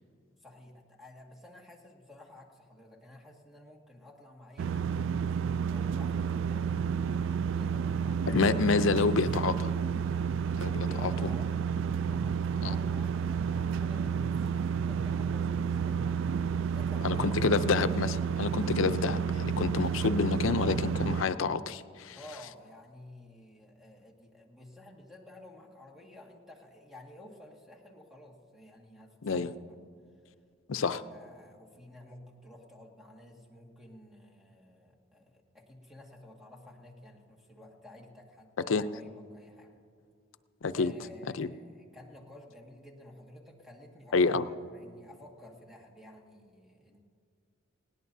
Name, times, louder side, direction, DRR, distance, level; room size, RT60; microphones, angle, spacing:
voice 1, 0.4-5.4 5.7-8.4 9.5-9.7 10.5-11.6 12.0-17.5 22.1-29.5 30.8-39.8 40.7-47.0, left 1 dB, ahead, -1 dB, 1.8 m, -52 dB
sound 1, 4.6-21.2, right 7 dB, 70° right, 0.3 m, -30 dB
voice 2, 8.3-9.7 10.5-11.3 12.6-12.8 17.0-22.2 29.2-29.5 30.7-31.0 38.7-38.9 40.6-40.9 41.3-41.5 44.1-44.4, left 4 dB, 85° left, 12 dB, 0.6 m, -28 dB
20.0 x 18.0 x 2.7 m, 2.3 s
head